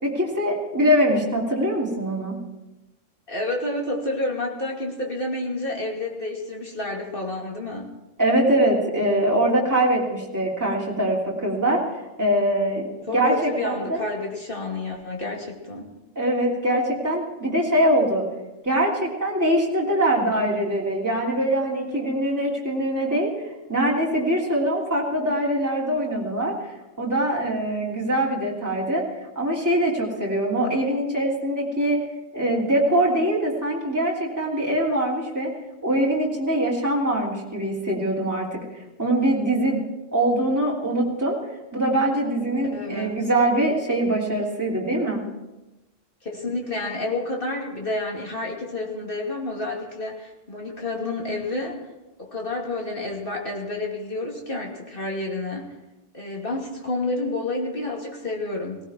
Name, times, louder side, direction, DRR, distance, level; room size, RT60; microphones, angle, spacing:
voice 1, 0.0-2.4 8.2-11.8 12.2-14.0 16.1-18.2 18.6-23.3 23.7-26.5 27.0-29.0 29.3-32.0 32.3-35.5 35.8-38.6 39.0-39.8 40.1-41.3 41.7-45.2, right 1 dB, 15° right, -5 dB, 3.1 m, -23 dB
voice 2, 3.3-7.9 13.1-15.9 42.7-43.2 46.2-51.8 52.2-55.7 56.1-58.8, left 2 dB, 45° left, -1 dB, 2.9 m, -29 dB
18.5 x 17.5 x 4.4 m, 1.0 s
omnidirectional pair, 1.3 m